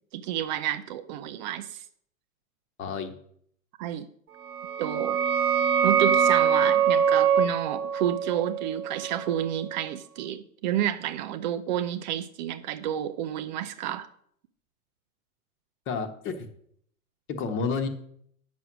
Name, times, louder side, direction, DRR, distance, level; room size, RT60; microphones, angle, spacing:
voice 1, 0.1-1.8 3.8-4.1 4.8-5.2 5.8-14.1, right 11 dB, 35° right, 11 dB, 0.4 m, -30 dB
voice 2, 2.8-3.1 15.9-16.5 17.3-17.9, left 5 dB, 30° left, 7 dB, 1.2 m, -30 dB
sound 1, 4.5-9.9, right 7 dB, 85° right, 1.0 m, -24 dB
8.7 x 6.2 x 6.0 m, 0.66 s
hypercardioid pair, 110°, 43 cm